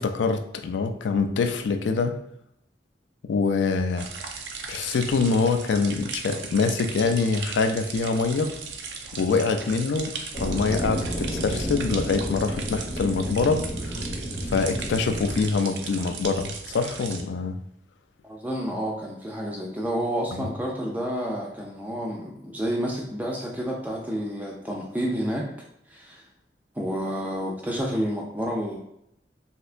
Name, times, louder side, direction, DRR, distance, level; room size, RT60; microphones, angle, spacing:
voice 1, 0.0-2.2 3.3-4.1 4.7-8.6 9.1-10.1 10.4-14.0 14.5-17.6 20.4-20.5, left 4 dB, 85° left, 7 dB, 0.4 m, -25 dB
sound 1, 4.0-17.2, right 5 dB, 75° right, 0.5 m, -37 dB
sound 2, 10.3-15.4, equal, 35° left, 0.8 m, -31 dB
voice 2, 18.2-25.5 25.9-26.2 26.7-28.8, equal, 10° right, -2 dB, 0.3 m, -29 dB
3.3 x 2.7 x 2.4 m, 0.76 s
head